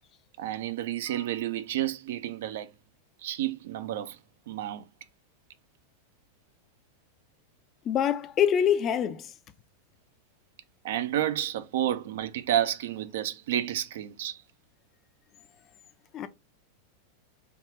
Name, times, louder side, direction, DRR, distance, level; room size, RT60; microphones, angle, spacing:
voice 1, 0.4-2.7 3.2-4.2 4.5-4.8 10.8-14.4, right 12 dB, 55° right, 0.3 m, -30 dB
voice 2, 7.9-9.3 16.1-16.3, left 9 dB, 30° left, 0.4 m, -25 dB
3.5 x 2.3 x 2.9 m
figure-of-eight pair, 90°, 0 cm